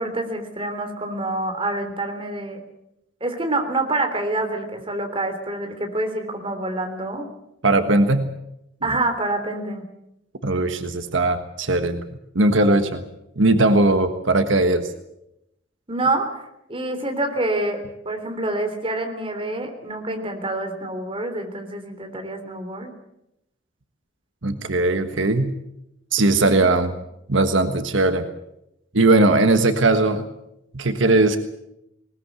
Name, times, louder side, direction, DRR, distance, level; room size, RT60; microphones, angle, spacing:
voice 1, 0.0-2.6 3.2-7.3 8.8-9.9 15.9-16.4 16.7-22.9, right 2 dB, 30° right, 5 dB, 3.4 m, -27 dB
voice 2, 7.6-8.3 10.4-12.0 12.3-13.0 13.4-14.9 24.4-25.5 26.1-26.9 27.3-28.3 28.9-30.2 30.7-31.4, right 2 dB, 80° right, 8 dB, 1.4 m, -19 dB
20.0 x 19.5 x 8.3 m, 0.84 s
head